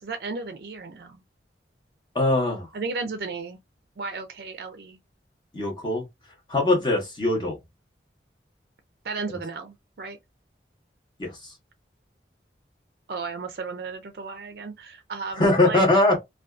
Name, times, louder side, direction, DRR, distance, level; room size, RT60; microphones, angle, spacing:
voice 1, 0.0-1.2 2.7-3.6 4.0-5.0 6.7-6.8 9.0-10.2 13.1-15.8, right 4 dB, 60° right, 0.4 m, -34 dB
voice 2, 2.1-2.7 5.5-6.0 6.5-7.6 9.3-9.4 11.2-11.5 15.4-16.2, left 2 dB, 25° left, 0.9 m, -22 dB
2.5 x 2.3 x 2.3 m
head